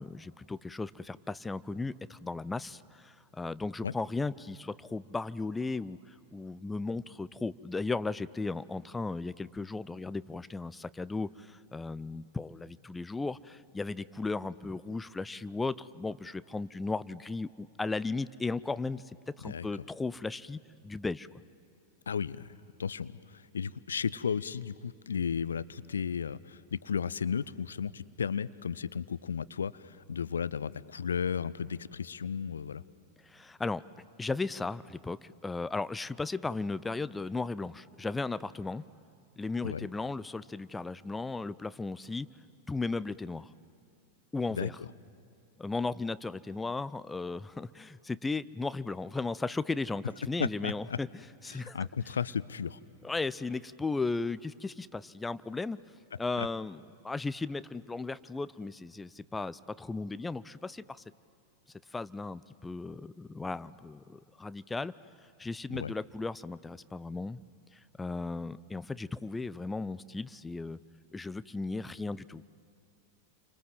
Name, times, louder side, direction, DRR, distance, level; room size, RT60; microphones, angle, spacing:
voice 1, 0.0-6.0 6.3-19.0 19.4-21.3 33.2-33.8 34.2-38.8 39.4-42.3 42.7-43.5 44.3-44.8 45.6-51.1 51.4-51.8 53.0-55.8 56.2-61.0 61.9-64.9 65.4-67.4 67.7-70.8 71.1-72.4, left 3 dB, 10° left, 17 dB, 0.6 m, -36 dB
voice 2, 22.1-32.8 39.6-39.9 44.5-44.7 50.4-51.0 51.5-52.8 56.4-56.5 65.7-65.9, left 7 dB, 70° left, 19 dB, 0.6 m, -34 dB
29.5 x 25.5 x 7.7 m, 2.6 s
figure-of-eight pair, 90°, 0 cm